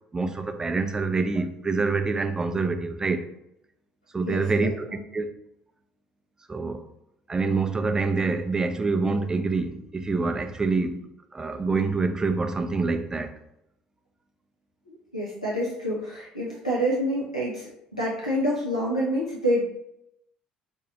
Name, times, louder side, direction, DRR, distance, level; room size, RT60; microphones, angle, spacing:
voice 1, 0.1-3.3 4.1-4.9 5.1-5.3 6.5-6.8 7.3-13.3, right 3 dB, 20° right, 0.4 m, -26 dB
voice 2, 4.3-4.7 14.9-19.6, equal, 85° left, 0.5 m, -27 dB
5.1 x 2.3 x 2.8 m
figure-of-eight pair, 55°, 4 cm